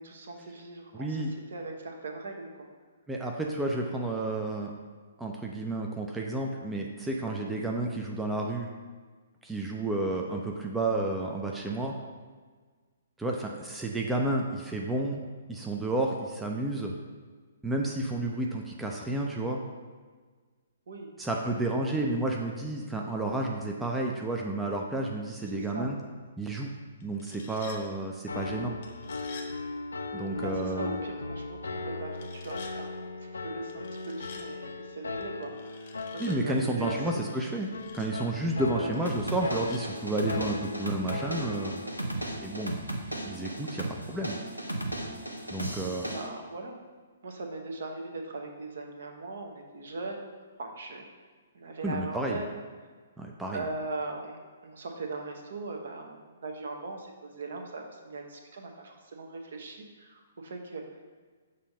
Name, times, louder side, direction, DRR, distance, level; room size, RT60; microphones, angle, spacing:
voice 1, 0.0-2.7 10.1-10.4 20.9-21.1 25.5-25.9 30.3-37.2 38.7-38.9 46.0-46.8 47.2-50.3 50.6-51.1 51.5-52.5 53.5-60.8, right 3 dB, 55° right, 3 dB, 0.8 m, -40 dB
voice 2, 0.9-1.3 3.1-4.7 5.2-8.7 9.4-11.9 13.2-15.2 15.5-16.9 17.6-19.6 21.2-26.0 26.4-26.7 27.0-28.8 30.1-31.0 36.2-37.7 37.9-41.8 42.4-42.9 43.2-44.4 45.5-46.1 51.8-52.4 53.2-53.6, right 2 dB, 5° right, -1 dB, 0.4 m, -31 dB
sound 1, 27.0-27.8 28.8-29.5 32.1-32.7 33.7-34.5 35.4-36.4 37.2-38.1 38.9-39.8, left 5 dB, 45° left, 0.8 m, -49 dB
Piano, 28.3-42.0, left 3 dB, 70° left, 0.3 m, -38 dB
sound 2, 39.1-46.3, right 1 dB, 85° right, 0.7 m, -36 dB
6.7 x 2.7 x 5.2 m, 1.5 s
figure-of-eight pair, 125°, 0 cm